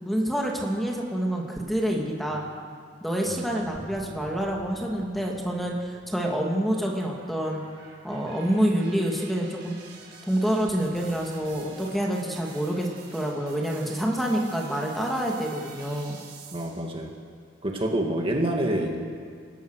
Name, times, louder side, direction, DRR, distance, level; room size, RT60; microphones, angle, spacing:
voice 1, 0.0-2.4 3.0-7.6 8.0-9.8 10.3-16.2, equal, ahead, -1 dB, 2.4 m, -27 dB
sound 1, 2.3-10.2 10.7-13.3 14.2-14.4, equal, 20° left, 3.0 m, -53 dB
sound 2, 5.9-17.0, right 5 dB, 60° right, 5.2 m, -49 dB
voice 2, 16.5-17.1 17.6-19.0, right 1 dB, 30° right, 1 dB, 2.2 m, -27 dB
28.5 x 15.5 x 6.5 m, 2.1 s
head